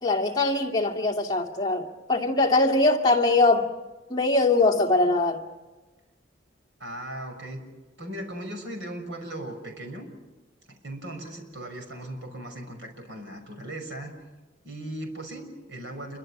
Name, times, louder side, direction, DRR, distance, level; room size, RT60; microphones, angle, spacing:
voice 1, 0.0-3.7 4.1-5.4, left 2 dB, 20° left, 2.4 m, -22 dB
voice 2, 6.8-7.6 8.0-10.0 10.7-14.1 14.6-16.2, right 1 dB, 70° right, 6.3 m, -38 dB
28.5 x 24.5 x 6.1 m
head